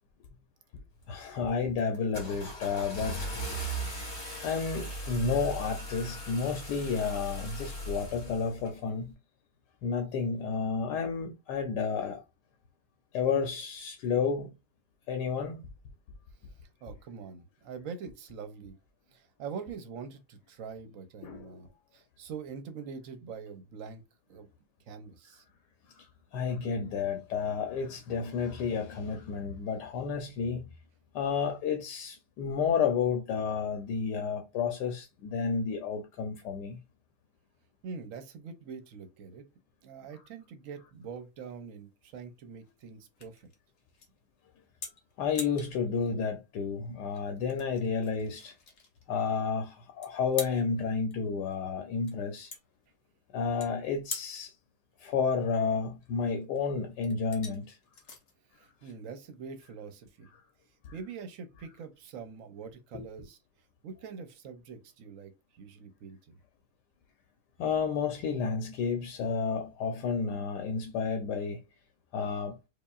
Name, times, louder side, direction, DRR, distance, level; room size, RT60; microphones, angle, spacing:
Car / Engine starting, 1.0-1.3 1.8-8.7, right 1 dB, 65° left, 1.9 m, -38 dB
voice 1, 1.1-3.3 4.4-9.1 9.8-12.2 13.1-14.5 15.1-15.7 21.2-21.6 25.9-26.1 26.3-30.6 31.1-36.8 45.2-48.5 49.1-52.5 53.3-54.5 55.0-57.8 62.9-63.0 67.6-71.6 72.1-72.6, left 5 dB, 85° left, 1.3 m, -31 dB
voice 2, 16.8-18.8 19.1-21.7 21.9-24.0 24.3-24.5 24.9-25.4 37.8-39.5 39.8-43.5 58.5-60.3 60.9-63.4 63.8-66.4, right 6 dB, 65° right, 0.9 m, -44 dB
sound 1, 40.9-59.7, left 4 dB, 45° left, 1.0 m, -47 dB
4.9 x 2.5 x 2.3 m
omnidirectional pair, 1.8 m